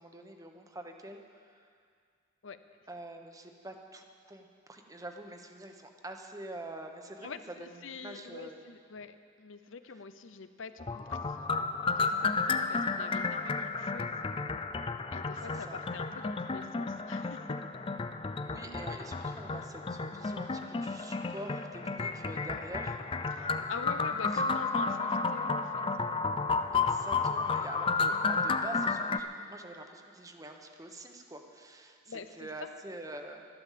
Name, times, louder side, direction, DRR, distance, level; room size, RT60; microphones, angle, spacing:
voice 1, 0.0-1.7 2.9-7.3 7.6-8.6 15.5-15.8 18.4-23.0 24.3-24.4 26.7-33.5, right 1 dB, 20° right, 4 dB, 1.1 m, -46 dB
voice 2, 7.2-11.4 11.8-14.2 15.1-17.6 23.3-26.1 32.1-32.7, left 5 dB, 80° left, 11 dB, 0.7 m, -46 dB
sound 1, 10.8-29.2, left 4 dB, 25° left, 0.5 m, -32 dB
12.5 x 12.0 x 7.5 m, 2.2 s
head